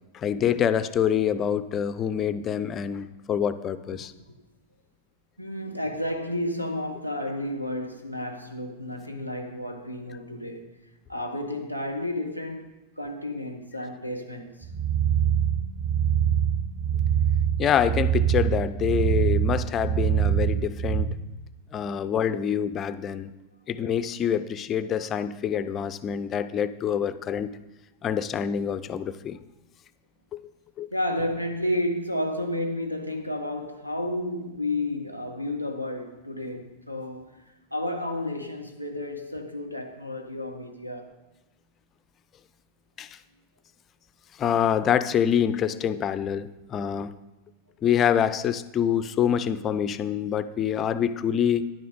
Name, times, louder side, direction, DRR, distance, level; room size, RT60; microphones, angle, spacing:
voice 1, 0.1-4.1 17.6-21.1 21.7-23.3 23.7-27.5 28.0-29.4 30.3-30.4 30.8-30.9 43.0-43.2 44.4-47.1 47.8-51.7, left 9 dB, 30° left, 0.5 m, -26 dB
voice 2, 5.4-10.8 11.1-12.7 13.0-14.7 30.9-37.4 37.7-41.2, left 1 dB, 90° right, 1.2 m, -31 dB
sound 1, 14.6-21.0, right 9 dB, 35° right, 2.1 m, -24 dB
10.5 x 9.2 x 3.8 m
figure-of-eight pair, 90°, 0 cm